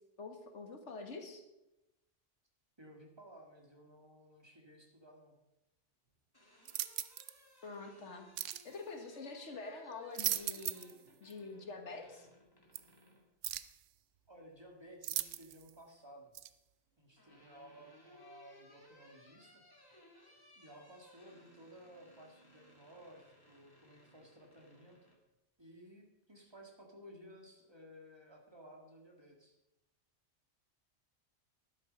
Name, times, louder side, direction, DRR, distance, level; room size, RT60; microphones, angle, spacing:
voice 1, 0.2-1.4 7.6-10.9 11.2-12.3, left 3 dB, 70° left, 5 dB, 1.8 m, -46 dB
voice 2, 2.8-5.4 14.3-16.3 17.0-19.6 20.6-25.0 25.6-29.6, equal, 20° right, 0 dB, 2.0 m, -56 dB
sound 1, 6.1-13.3 14.8-15.4 16.7-25.2, left 1 dB, 20° left, 2.2 m, -63 dB
sound 2, 6.6-7.4 8.4-8.7 9.9-11.0 11.3-11.4 12.7-12.8 13.4-13.8 15.0-15.7 16.3-16.5, right 12 dB, 80° right, 1.0 m, -38 dB
12.5 x 11.0 x 5.3 m, 0.94 s
omnidirectional pair, 1.2 m